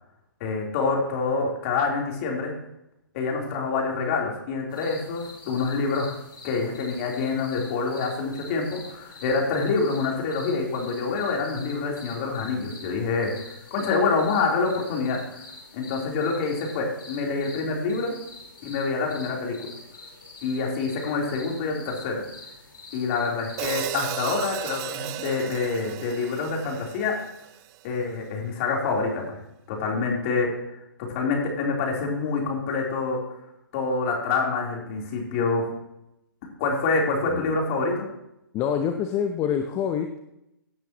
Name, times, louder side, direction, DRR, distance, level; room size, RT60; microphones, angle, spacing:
voice 1, 0.4-2.5 3.1-6.1 6.4-15.2 15.7-18.1 18.6-19.7 20.4-22.2 22.9-27.2 27.8-29.4 29.7-30.5 31.1-33.2 33.7-35.7 36.6-38.1, left 4 dB, 40° left, -1 dB, 3.5 m, -26 dB
sound 1, 4.7-23.9, left 3 dB, 75° left, 4.3 m, -46 dB
Hi-hat, 23.6-27.8, right 15 dB, 25° right, 0.5 m, -35 dB
voice 2, 38.5-40.2, left 8 dB, 25° left, 5 dB, 0.8 m, -26 dB
17.0 x 9.0 x 3.0 m, 0.85 s
hypercardioid pair, 135°, 12 cm